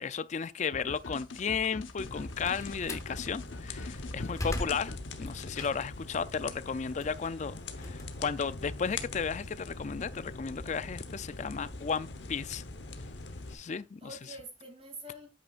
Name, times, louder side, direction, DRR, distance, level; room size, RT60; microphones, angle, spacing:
voice 1, 0.0-12.6 13.5-14.2, left 6 dB, 40° left, 0.4 m, -34 dB
sound 1, 0.7-5.8, left 3 dB, 90° left, 0.9 m, -45 dB
sound 2, 2.0-13.5, left 3 dB, 65° left, 1.0 m, -43 dB
Slam, 2.1-3.1 3.7-6.0 6.5-8.8, left 1 dB, 15° left, 0.9 m, -40 dB
voice 2, 4.0-4.6 13.4-13.7 14.0-15.3, right 1 dB, 30° right, 2.6 m, -48 dB
8.8 x 8.1 x 2.4 m
head